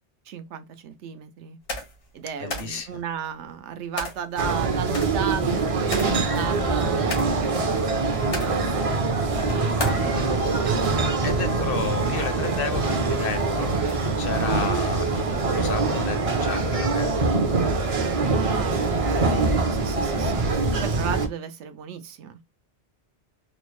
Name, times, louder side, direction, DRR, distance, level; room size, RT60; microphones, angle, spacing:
voice 1, 0.3-1.6 2.1-9.0 9.3-10.6 11.4-12.2 12.7-12.9 18.3-20.5 20.8-22.4, right 8 dB, 85° right, 0.9 m, -35 dB
sound 1, 1.7-2.0 2.5-2.8 4.0-4.3 4.9-5.6 5.9-6.3 6.7-7.5 8.2-8.7 9.5-10.0, left 2 dB, 90° left, 1.6 m, -33 dB
voice 2, 2.4-3.0 11.2-13.8 14.2-17.9, left 6 dB, 60° left, 0.7 m, -32 dB
sound 2, 4.4-21.3, right 3 dB, 45° right, 0.5 m, -24 dB
4.1 x 2.1 x 3.0 m
omnidirectional pair, 1.2 m